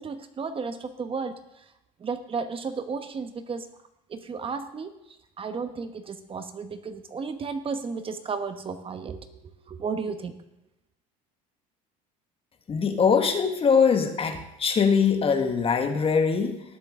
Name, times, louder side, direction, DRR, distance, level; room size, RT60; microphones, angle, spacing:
voice 1, 0.0-1.6 2.0-3.7 4.1-9.2 9.7-10.4, right 5 dB, 30° right, 9 dB, 1.1 m, -33 dB
voice 2, 12.7-16.6, left 6 dB, 35° left, 6 dB, 1.6 m, -22 dB
19.0 x 7.7 x 3.7 m, 0.88 s
supercardioid pair, 100°, 17 cm